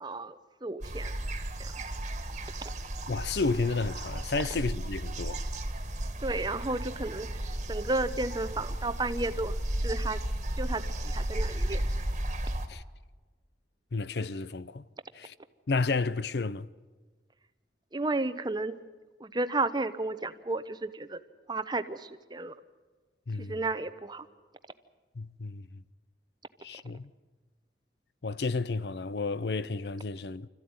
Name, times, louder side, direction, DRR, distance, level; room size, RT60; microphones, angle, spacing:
voice 1, 0.0-1.1 1.6-1.7 6.2-7.3 7.7-9.6 9.8-10.2 10.6-11.8 17.9-18.8 19.2-21.2 21.5-22.5 23.5-24.3, right 2 dB, 25° right, 0.8 m, -32 dB
sound 1, 0.8-12.7, right 1 dB, 40° right, 1.8 m, -34 dB
voice 2, 3.1-5.4 12.7-12.8 13.9-14.8 15.1-15.3 15.7-16.7 23.3-23.6 25.2-25.8 26.6-27.1 28.2-30.5, left 3 dB, 70° left, 0.6 m, -31 dB
26.0 x 14.5 x 9.6 m
head